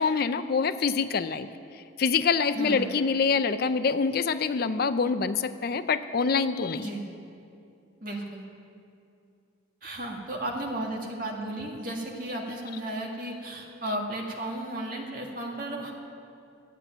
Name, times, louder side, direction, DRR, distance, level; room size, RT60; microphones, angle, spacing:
voice 1, 0.0-1.5 2.0-6.9, left 5 dB, 50° left, 12 dB, 0.4 m, -25 dB
voice 2, 2.5-2.9 6.8-7.1 8.0-8.4 9.8-15.9, right 1 dB, 45° right, -1 dB, 1.9 m, -34 dB
13.0 x 8.4 x 9.0 m, 2.5 s
head